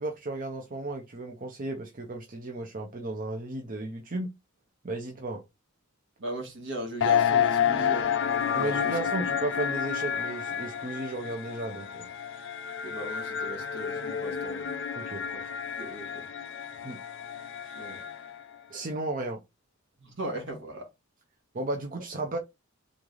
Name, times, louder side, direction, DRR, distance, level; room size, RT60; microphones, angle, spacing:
voice 1, 0.0-4.3 4.8-5.4 8.5-12.1 14.9-15.2 16.8-17.0 18.7-19.4 21.5-22.4, right 2 dB, 40° right, 0.7 m, -34 dB
voice 2, 6.2-8.1 8.5-8.9 12.8-14.7 15.8-16.3 17.7-18.0 20.0-20.9, right 1 dB, 60° right, 1.6 m, -38 dB
sound 1, 7.0-18.4, left 8 dB, 60° left, 0.5 m, -30 dB
3.8 x 3.2 x 3.8 m
head